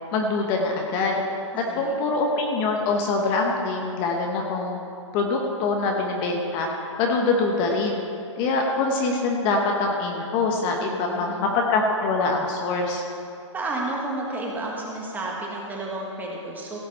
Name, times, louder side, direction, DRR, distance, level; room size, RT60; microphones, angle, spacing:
voice 1, 0.1-1.2 1.6-4.8 5.1-8.0 8.4-13.0, left 3 dB, 30° left, 1 dB, 1.1 m, -24 dB
voice 2, 1.7-2.1 10.8-11.5 13.5-16.8, right 2 dB, 10° right, -2 dB, 1.8 m, -32 dB
16.5 x 8.1 x 4.3 m, 2.6 s
hypercardioid pair, 140°, 16 cm